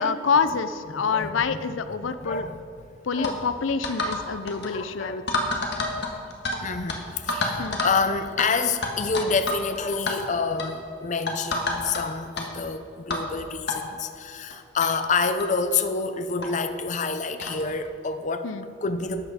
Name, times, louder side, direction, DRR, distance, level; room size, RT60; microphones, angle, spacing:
voice 1, 0.0-2.5 3.0-5.4 7.6-7.8 18.4-18.6, left 5 dB, 90° left, 12 dB, 0.5 m, -27 dB
voice 2, 1.1-1.6 2.2-2.6 3.1-3.4 4.7-5.2 6.6-18.5 18.8-19.3, left 4 dB, 40° left, 10 dB, 0.5 m, -28 dB
sound 1, 3.2-3.4 3.8-4.2 4.5-4.7 5.3-6.6 6.9-7.0 7.3-8.0 8.4-8.5 8.8-9.6 9.9-10.1 10.6-10.8 11.3-12.0 12.4-12.5 13.1-13.3 13.7-13.8 14.5-14.6 14.8-14.9 15.4-15.5 16.4-16.5 17.4-17.6, left 2 dB, 60° left, 1.5 m, -28 dB
12.5 x 8.2 x 5.0 m, 2.6 s
head